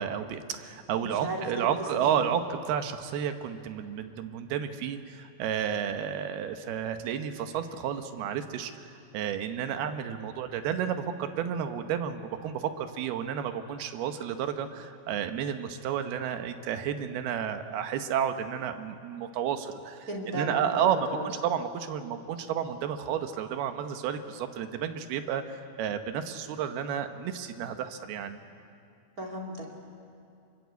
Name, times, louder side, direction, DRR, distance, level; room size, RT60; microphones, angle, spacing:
voice 1, 0.0-8.9 9.1-28.4, right 8 dB, 85° right, 8 dB, 3.1 m, -31 dB
voice 2, 1.0-1.7 2.0-2.2 20.1-21.3 29.2-29.7, right 1 dB, 25° right, 0 dB, 2.8 m, -36 dB
25.0 x 23.0 x 8.3 m, 2.6 s
omnidirectional pair, 4.4 m